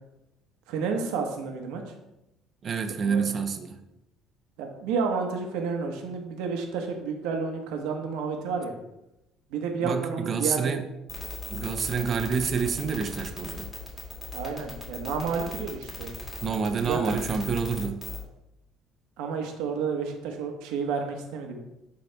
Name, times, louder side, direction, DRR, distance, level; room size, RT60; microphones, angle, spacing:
voice 1, 0.7-1.9 3.0-3.3 4.6-8.8 9.5-10.8 14.3-16.1 16.9-17.2 19.2-21.6, right 5 dB, 90° right, 3 dB, 1.3 m, -30 dB
voice 2, 2.6-3.8 9.8-10.8 11.5-13.7 16.4-18.0, right 6 dB, 35° right, 8 dB, 0.7 m, -28 dB
sound 1, 11.1-18.2, left 3 dB, 25° left, 2.3 m, -37 dB
10.5 x 4.2 x 3.4 m, 0.90 s
cardioid pair, 135°, 0 cm